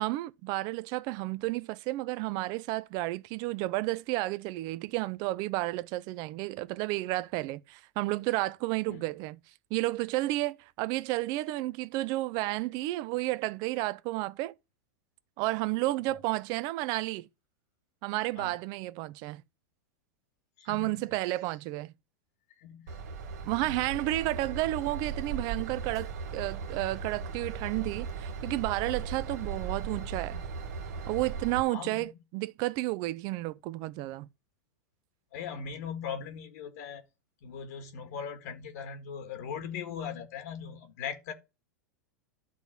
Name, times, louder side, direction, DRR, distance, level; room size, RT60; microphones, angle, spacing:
voice 1, 0.0-9.4 9.7-14.5 15.4-17.3 18.0-19.4 20.7-21.9 23.5-30.4 31.1-34.3, right 18 dB, 45° right, 0.6 m, -32 dB
voice 2, 20.6-21.0 22.5-23.0 23.6-23.8 31.7-32.1 35.3-37.0 37.4-41.3, left 7 dB, 60° left, 1.8 m, -39 dB
Train / Engine, 22.9-31.6, right 5 dB, 65° right, 1.2 m, -37 dB
12.0 x 4.0 x 6.1 m
hypercardioid pair, 100°, 9 cm